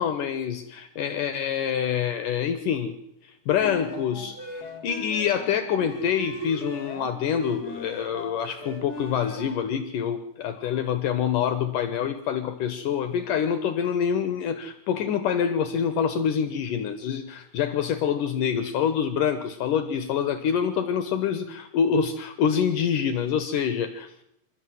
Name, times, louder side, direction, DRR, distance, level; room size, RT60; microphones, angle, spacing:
voice 1, 0.0-3.0 3.2-24.1, left 8 dB, 65° left, 10 dB, 2.5 m, -26 dB
sound 1, 3.6-9.7, left 1 dB, 25° left, 4.9 m, -39 dB
27.5 x 13.5 x 7.9 m, 0.79 s
omnidirectional pair, 4.4 m